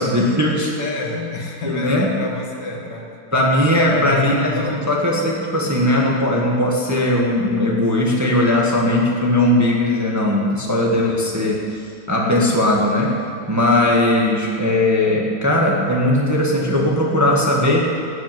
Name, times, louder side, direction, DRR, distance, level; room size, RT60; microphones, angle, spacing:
voice 1, 0.0-0.7 1.6-2.2 3.3-11.8 12.1-13.2 13.5-17.9, left 1 dB, 10° right, -3 dB, 1.4 m, -18 dB
voice 2, 0.8-3.5 3.8-4.9, left 3 dB, 60° left, 0 dB, 2.1 m, -28 dB
13.0 x 8.4 x 9.3 m, 2.4 s
omnidirectional pair, 2.2 m